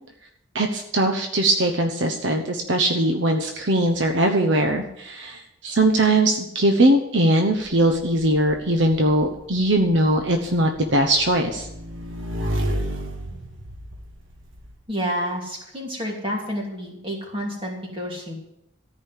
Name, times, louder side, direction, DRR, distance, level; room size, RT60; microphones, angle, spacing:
voice 1, 0.5-11.7, right 1 dB, 65° right, 4 dB, 1.0 m, -20 dB
Motorcycle / Engine, 7.6-14.7, equal, 85° right, 1.6 m, -32 dB
voice 2, 14.9-18.3, equal, 25° right, -1 dB, 2.9 m, -29 dB
14.0 x 5.3 x 8.4 m, 0.81 s
head